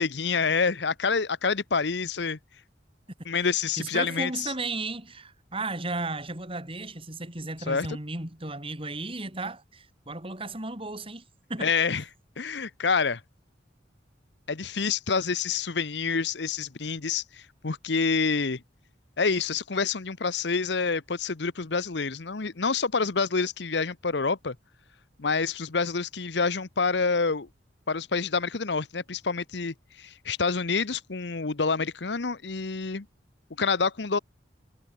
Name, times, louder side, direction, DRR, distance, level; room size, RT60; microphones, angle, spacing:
voice 1, 0.0-2.4 3.2-4.5 7.7-7.9 11.6-12.0 12.4-13.2 14.5-18.6 19.2-24.5 25.2-27.5 27.9-33.0 33.6-34.2, left 4 dB, 65° left, 0.9 m, -27 dB
voice 2, 3.8-11.2 11.5-11.7, right 2 dB, 30° right, 5.7 m, -34 dB
head